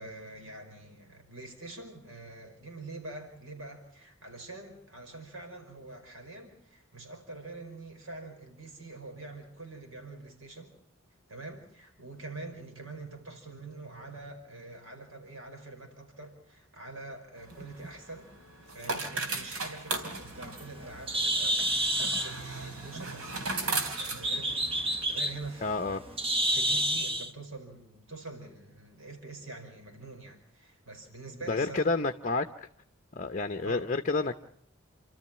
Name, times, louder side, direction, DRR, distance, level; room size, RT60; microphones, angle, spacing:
voice 1, 0.0-10.7 11.3-18.3 18.6-26.0 26.4-31.8 33.6-33.9, right 2 dB, 70° right, 4 dB, 5.1 m, -45 dB
sound 1, 17.4-25.0, right 3 dB, 85° right, 3.2 m, -37 dB
Bird, 20.0-27.3, right 1 dB, 25° right, 1.0 m, -30 dB
voice 2, 25.6-26.0 31.5-32.5 33.1-34.4, left 3 dB, 35° left, 7 dB, 0.8 m, -29 dB
29.0 x 13.0 x 8.7 m, 0.73 s
head